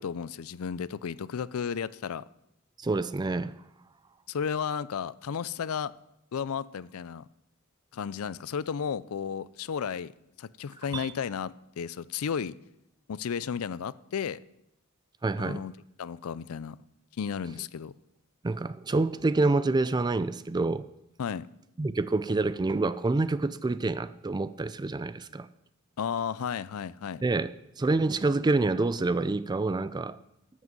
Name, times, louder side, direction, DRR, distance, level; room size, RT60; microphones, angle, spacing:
voice 1, 0.0-2.2 4.3-5.9 6.3-7.3 7.9-10.1 10.4-12.5 13.1-14.4 15.4-15.7 16.0-16.8 17.2-17.9 21.2-21.5 26.0-27.2, left 7 dB, 80° left, 0.4 m, -33 dB
voice 2, 2.8-3.6 10.9-11.1 15.2-15.6 18.4-20.8 21.8-25.5 27.2-30.2, right 3 dB, 20° right, 0.4 m, -27 dB
12.5 x 6.3 x 7.5 m
head